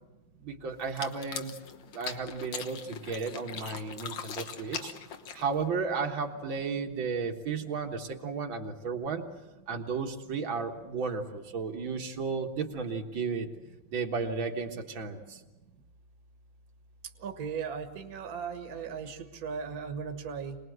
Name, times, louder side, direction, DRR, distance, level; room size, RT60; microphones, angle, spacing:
voice 1, 0.4-1.5 1.9-4.9 5.3-9.3 9.7-13.5 13.9-15.4, right 5 dB, 75° right, 3 dB, 2.3 m, -33 dB
sound 1, 0.8-5.7, left 6 dB, 65° left, 1.9 m, -41 dB
voice 2, 17.2-20.6, right 6 dB, 50° right, 6 dB, 1.8 m, -37 dB
25.5 x 20.0 x 7.9 m, 1.1 s
omnidirectional pair, 2.2 m